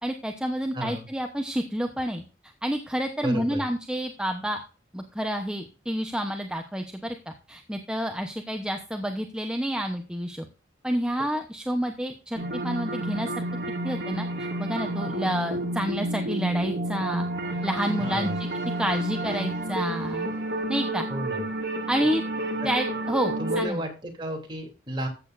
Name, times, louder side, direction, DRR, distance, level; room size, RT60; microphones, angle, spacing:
voice 1, 0.0-2.2 2.6-4.6 4.9-10.5 10.8-13.4 13.8-17.2 17.6-18.5 18.8-20.3 20.7-21.0 21.9-22.2 22.6-23.8, equal, 5° right, 4 dB, 0.9 m, -29 dB
voice 2, 0.7-1.1 3.2-3.6 18.0-18.4 21.1-21.4 22.6-22.7 23.4-25.1, right 1 dB, 25° right, 2 dB, 3.1 m, -33 dB
sound 1, 12.4-23.7, right 1 dB, 60° right, 2.5 m, -30 dB
14.5 x 8.5 x 2.6 m, 0.34 s
head